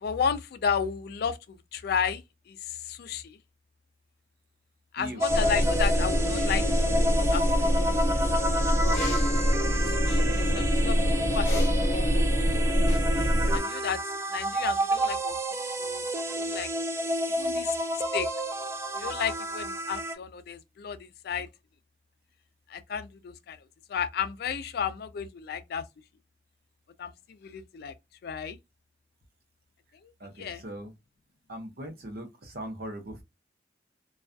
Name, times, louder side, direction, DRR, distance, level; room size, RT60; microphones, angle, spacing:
voice 1, 0.0-3.4 4.9-6.6 7.2-8.4 8.8-9.0 9.4-11.0 11.3-12.1 12.7-12.8 13.5-14.0 14.3-15.4 15.8-16.0 16.4-16.7 17.3-17.7 18.1-18.3 18.9-21.5 22.7-23.6 23.9-25.8 27.0-27.9 28.2-28.6 30.0-30.1 30.4-30.6, left 7 dB, 60° left, 0.3 m, -33 dB
sound 1, 5.2-20.1, equal, 15° right, 0.3 m, -30 dB
sound 2, 5.3-13.6, equal, 40° left, 0.9 m, -25 dB
voice 2, 30.2-30.9 31.5-33.2, right 1 dB, 60° right, 0.7 m, -39 dB
2.3 x 2.2 x 2.4 m
head